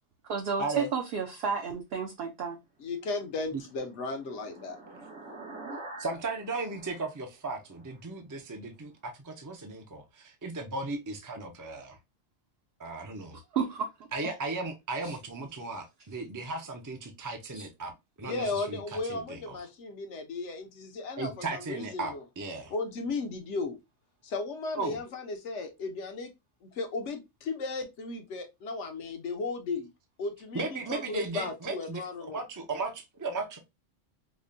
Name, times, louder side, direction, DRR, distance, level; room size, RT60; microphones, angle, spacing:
voice 1, 0.3-2.6 13.3-13.9 15.0-15.2 17.5-17.6, right 6 dB, 65° right, 0.8 m, -32 dB
voice 2, 2.8-4.8 18.2-22.2 22.7-23.8 24.2-26.3 26.6-29.9 30.2-32.4, left 3 dB, 75° left, 1.1 m, -35 dB
sound 1, 3.2-8.0, right 2 dB, 85° right, 1.6 m, -46 dB
voice 3, 6.0-12.0 12.8-13.4 14.1-17.9 18.2-18.8 19.1-19.6 21.2-22.7 24.7-25.0 30.5-32.0 32.3-33.6, right 3 dB, 25° right, 0.4 m, -36 dB
5.2 x 2.2 x 2.5 m
omnidirectional pair, 1.2 m